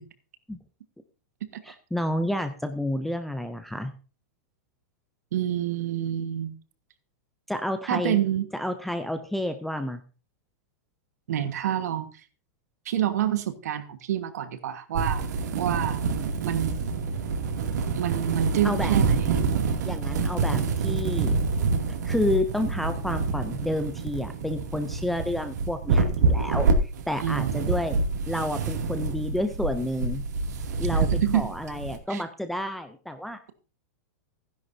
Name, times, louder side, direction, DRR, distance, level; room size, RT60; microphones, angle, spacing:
voice 1, 1.6-3.9 7.5-8.2 8.5-10.0 18.6-19.0 19.8-21.4 21.9-28.0 28.3-30.2 30.8-31.1 31.3-33.4, left 1 dB, ahead, 8 dB, 0.4 m, -30 dB
voice 2, 5.3-6.5 7.9-8.5 11.3-12.1 12.8-15.2 15.6-16.0 16.4-16.9 17.9-19.1 27.2-27.6 31.2-31.5 32.1-32.2, right 11 dB, 70° right, 10 dB, 1.4 m, -27 dB
sound 1, 14.9-32.0, right 4 dB, 90° right, 2.4 m, -27 dB
15.5 x 10.5 x 2.7 m, 0.34 s
supercardioid pair, 175°, 9 cm